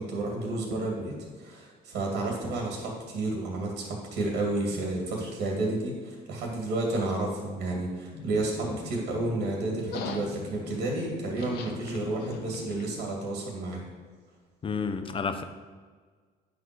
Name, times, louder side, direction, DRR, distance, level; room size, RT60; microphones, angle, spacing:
voice 1, 0.0-13.8, right 2 dB, 85° right, -1 dB, 2.5 m, -31 dB
sound 1, 8.1-13.2, left 5 dB, 75° left, 0.9 m, -41 dB
voice 2, 14.6-15.4, left 5 dB, 30° left, 9 dB, 0.7 m, -30 dB
9.4 x 4.0 x 6.2 m, 1.5 s
cardioid pair, 110°, 17 cm